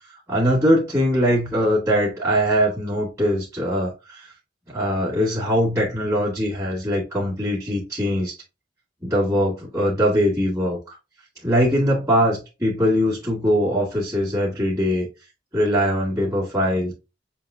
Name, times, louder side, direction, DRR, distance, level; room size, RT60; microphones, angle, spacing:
voice 1, 0.3-4.3 4.7-8.3 9.0-11.0 11.4-15.1 15.5-16.9, equal, 15° right, -8 dB, 1.8 m, -21 dB
7.0 x 2.9 x 2.7 m, 0.28 s
head